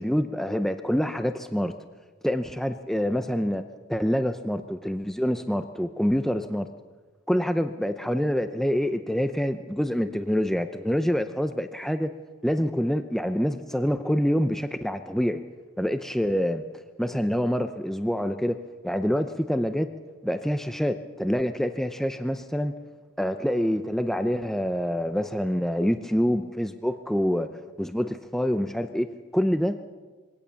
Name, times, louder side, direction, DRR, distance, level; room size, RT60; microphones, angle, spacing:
voice 1, 0.0-1.7 2.2-3.6 3.9-6.7 7.3-12.1 12.4-15.4 15.8-16.6 17.0-18.6 18.8-19.9 20.2-22.7 23.2-27.5 27.8-29.8, equal, ahead, 9 dB, 0.5 m, -26 dB
22.5 x 17.5 x 7.0 m, 1.4 s
head